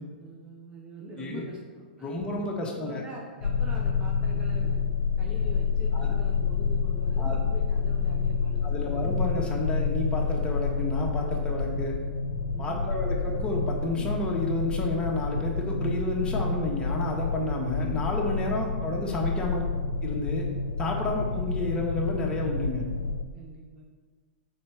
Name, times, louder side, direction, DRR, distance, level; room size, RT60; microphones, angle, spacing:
voice 1, 0.2-4.8 5.2-9.0 12.5-13.2 21.0-21.2 23.3-23.9, right 1 dB, 20° right, -2 dB, 0.9 m, -44 dB
voice 2, 2.0-3.0 5.9-6.1 7.2-7.4 8.6-11.9 12.6-19.6 20.0-20.5 20.8-22.8, left 2 dB, 15° left, -2 dB, 1.2 m, -31 dB
sound 1, 3.4-23.2, left 5 dB, 85° left, 0.4 m, -28 dB
4.4 x 4.3 x 5.8 m, 1.5 s
hypercardioid pair, 115°, 5 cm